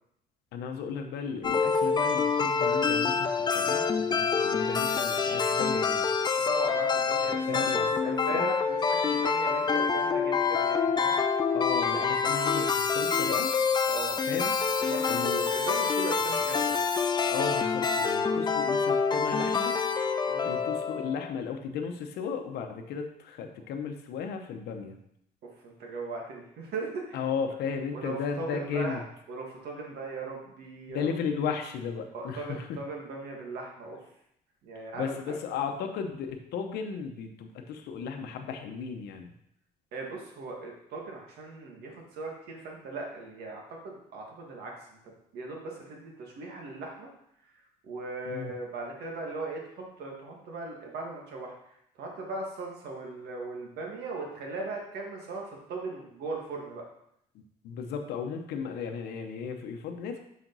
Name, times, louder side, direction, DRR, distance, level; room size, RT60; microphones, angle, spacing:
voice 1, 0.5-6.1 7.5-8.5 11.5-13.5 14.3-14.6 15.1-15.5 17.3-19.8 20.4-25.0 27.1-29.0 30.9-32.8 34.9-39.3 48.3-48.5 57.6-60.2, left 6 dB, 75° left, 4 dB, 0.8 m, -35 dB
sound 1, 1.4-21.3, left 5 dB, 25° left, 0.5 m, -27 dB
voice 2, 6.5-11.1 13.9-14.3 14.8-16.8 20.3-20.6 25.6-27.2 27.9-29.0 29.3-31.1 32.1-34.0 34.6-35.4 39.9-45.0 45.3-47.1 47.8-49.6 50.0-51.5 52.0-56.8, right 3 dB, 70° right, 0 dB, 1.8 m, -38 dB
6.1 x 5.1 x 4.0 m, 0.75 s
cardioid pair, 110°, 17 cm